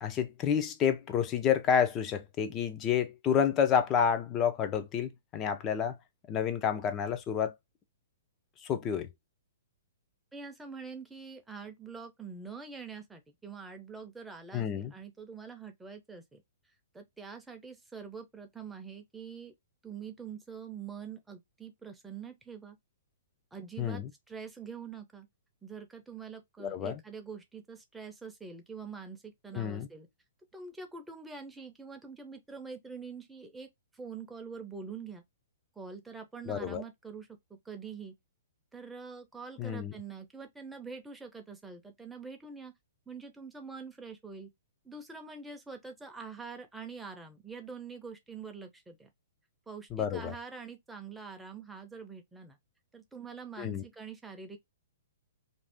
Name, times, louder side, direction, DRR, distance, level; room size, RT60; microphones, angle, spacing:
voice 1, 0.0-5.9 6.3-7.5 8.6-9.1 14.5-14.9 23.8-24.1 26.6-27.0 29.5-29.9 36.5-36.8 39.6-39.9 49.9-50.3 53.6-53.8, left 8 dB, 25° left, 0.5 m, -29 dB
voice 2, 10.3-16.4 16.9-19.5 19.8-22.8 23.5-25.3 25.6-30.1 30.5-35.2 35.8-38.1 38.7-42.7 43.1-44.5 44.8-49.1 49.7-52.6 52.9-54.6, right 5 dB, 5° right, 0.7 m, -45 dB
2.6 x 2.4 x 3.4 m
hypercardioid pair, 135°, 0 cm